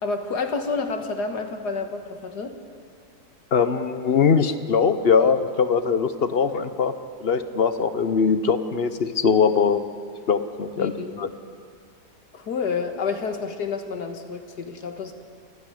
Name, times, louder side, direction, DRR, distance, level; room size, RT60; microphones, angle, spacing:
voice 1, 0.0-2.5 10.8-11.2 12.3-15.1, left 4 dB, 75° left, 6 dB, 2.0 m, -29 dB
voice 2, 3.5-6.9 7.2-9.8 10.3-11.3, left 6 dB, 45° left, 11 dB, 0.9 m, -21 dB
28.0 x 9.8 x 10.0 m, 2.3 s
omnidirectional pair, 1.8 m